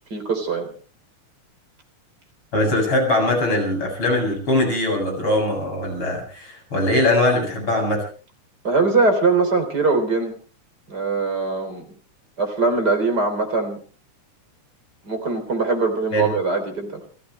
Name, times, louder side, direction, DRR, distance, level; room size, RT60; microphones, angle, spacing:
voice 1, 0.1-0.7 8.6-10.3 10.9-11.9 12.4-13.8 15.0-17.0, right 3 dB, 30° right, 6 dB, 4.1 m, -21 dB
voice 2, 2.5-8.0 16.1-16.3, left 1 dB, 40° left, 2 dB, 8.7 m, -21 dB
29.0 x 15.0 x 3.3 m, 0.39 s
omnidirectional pair, 3.5 m